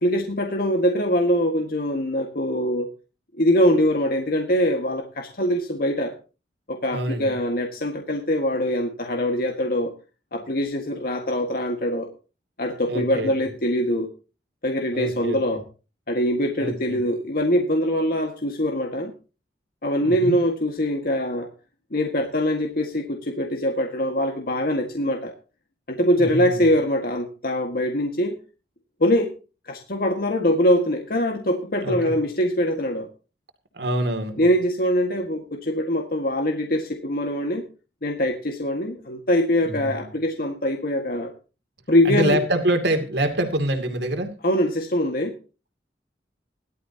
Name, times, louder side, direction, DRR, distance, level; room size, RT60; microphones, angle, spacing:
voice 1, 0.0-2.9 3.3-6.2 6.7-9.9 10.3-12.1 12.6-14.1 14.6-15.6 16.1-19.1 19.8-21.5 21.9-25.3 25.9-28.4 29.0-29.3 29.7-33.1 34.4-37.6 38.0-41.3 41.9-42.4 44.4-45.4, equal, 55° left, 3 dB, 1.7 m, -23 dB
voice 2, 6.9-7.3 12.9-13.3 14.9-15.6 16.6-17.0 20.0-20.4 26.2-26.7 31.8-32.1 33.7-34.4 39.7-40.1 42.0-44.3, right 1 dB, 75° right, 6 dB, 2.5 m, -25 dB
18.5 x 12.5 x 2.9 m, 0.33 s
head